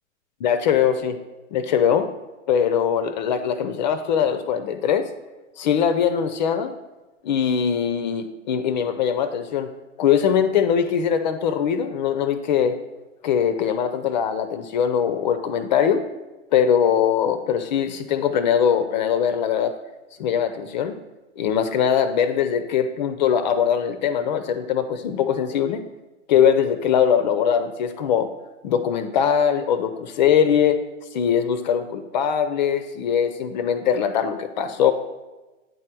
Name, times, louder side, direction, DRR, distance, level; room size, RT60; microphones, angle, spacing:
voice 1, 0.4-1.2 1.5-2.1 2.5-5.1 5.6-6.7 7.2-9.7 10.0-12.8 13.2-16.0 16.5-19.7 20.2-20.9 21.4-25.8 26.3-28.3 28.6-30.8 31.1-34.9, left 8 dB, 35° left, 10 dB, 0.4 m, -21 dB
9.1 x 3.2 x 6.0 m, 1.1 s
hypercardioid pair, 120°, 39 cm